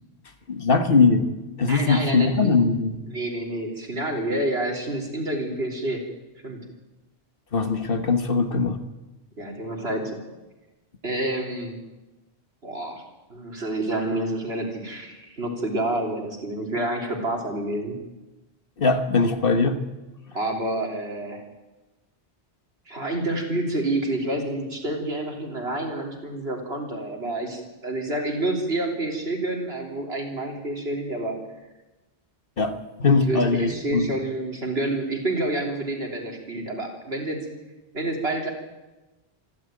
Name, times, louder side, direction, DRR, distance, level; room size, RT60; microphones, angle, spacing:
voice 1, 0.5-1.3 1.6-3.0 7.5-8.8 18.8-19.8 32.6-34.1, left 4 dB, 55° left, 8 dB, 1.6 m, -21 dB
voice 2, 1.7-6.0 6.4-6.6 9.4-10.2 11.0-11.8 12.6-13.0 13.3-18.0 20.3-21.4 22.9-31.4 33.3-37.5 37.9-38.5, right 1 dB, 70° right, 1 dB, 3.9 m, -28 dB
26.5 x 12.0 x 9.1 m, 1.1 s
omnidirectional pair, 1.1 m